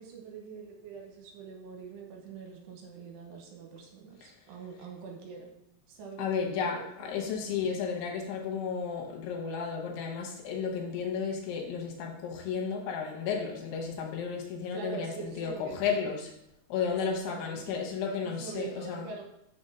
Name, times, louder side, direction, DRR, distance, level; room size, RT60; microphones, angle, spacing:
voice 1, 0.0-5.5 5.9-7.1 14.7-16.0 16.9-17.8 18.2-19.2, right 5 dB, 80° right, 0 dB, 3.1 m, -44 dB
voice 2, 6.2-16.3 16.7-19.1, left 6 dB, 75° left, 0 dB, 2.7 m, -33 dB
6.2 x 4.3 x 5.5 m, 0.79 s
omnidirectional pair, 5.0 m